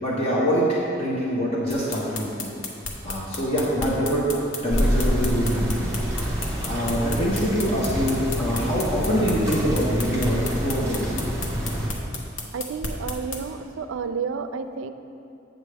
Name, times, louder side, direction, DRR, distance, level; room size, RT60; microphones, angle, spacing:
voice 1, 0.0-2.6 3.0-4.3 4.6-5.8 6.4-11.1, equal, 30° left, -6 dB, 1.0 m, -25 dB
sound 1, 1.7-13.4, left 3 dB, 70° left, 1.0 m, -33 dB
sound 2, 4.7-11.9, equal, 15° right, 1.4 m, -27 dB
voice 2, 12.5-14.9, right 5 dB, 70° right, 9 dB, 0.4 m, -31 dB
8.0 x 7.5 x 3.4 m, 2.7 s
head